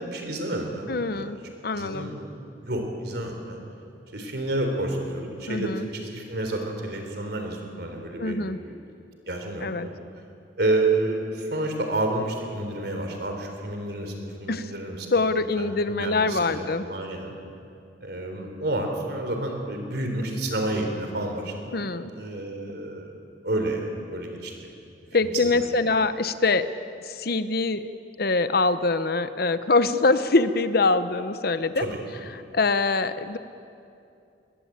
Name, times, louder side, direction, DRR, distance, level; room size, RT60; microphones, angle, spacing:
voice 1, 0.0-1.3 1.8-2.3 2.6-3.6 4.1-8.4 8.6-8.7 9.3-9.9 10.6-15.0 15.6-17.3 18.0-21.8 22.1-23.1 23.4-24.7 25.2-25.3 25.6-25.7 31.8-32.0, right 2 dB, 65° right, 4 dB, 3.9 m, -30 dB
voice 2, 0.9-2.1 5.5-5.9 8.2-8.6 9.6-9.9 14.5-14.7 15.1-16.9 21.7-22.1 25.1-26.7 27.0-27.9 28.2-31.9 32.3-33.4, left 3 dB, 60° left, 12 dB, 0.9 m, -24 dB
21.5 x 20.0 x 8.8 m, 2.6 s
head